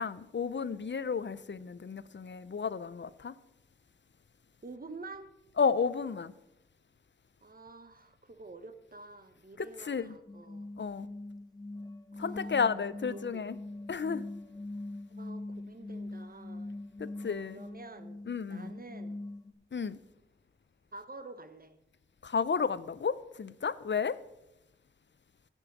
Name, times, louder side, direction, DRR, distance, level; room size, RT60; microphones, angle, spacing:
voice 1, 0.0-3.4 5.6-6.3 9.6-10.2 10.8-11.1 12.2-13.6 13.9-14.2 17.0-17.6 18.3-18.7 19.7-20.0 22.2-24.2, left 5 dB, 60° left, 0.5 m, -32 dB
voice 2, 4.6-5.3 7.4-10.7 12.1-13.4 15.1-16.7 17.5-18.2 18.5-19.2 20.9-21.8, right 3 dB, 45° right, 1.0 m, -48 dB
sound 1, 10.3-19.5, left 2 dB, 20° left, 0.9 m, -42 dB
15.0 x 5.4 x 6.0 m
wide cardioid pair, 55°, 21 cm